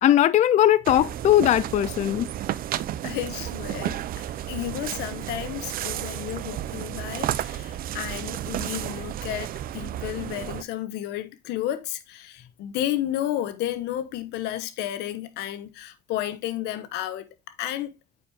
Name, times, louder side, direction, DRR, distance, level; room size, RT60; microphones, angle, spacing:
voice 1, 0.0-2.3, left 12 dB, 45° left, 0.4 m, -19 dB
sound 1, 0.9-10.6, right 12 dB, 60° right, 0.5 m, -32 dB
voice 2, 3.0-4.1 4.5-17.9, left 12 dB, 90° left, 1.1 m, -32 dB
8.7 x 5.0 x 3.5 m
cardioid pair, 110°, 17 cm